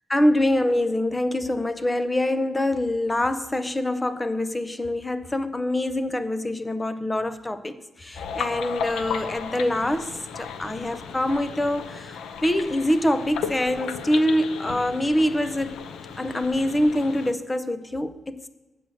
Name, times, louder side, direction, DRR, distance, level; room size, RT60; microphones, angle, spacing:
voice 1, 0.1-15.8 16.2-18.5, left 1 dB, 10° left, 0.5 m, -25 dB
sound 1, 8.1-17.3, left 6 dB, 90° left, 0.6 m, -35 dB
7.6 x 6.4 x 7.5 m
wide cardioid pair, 180°, 0 cm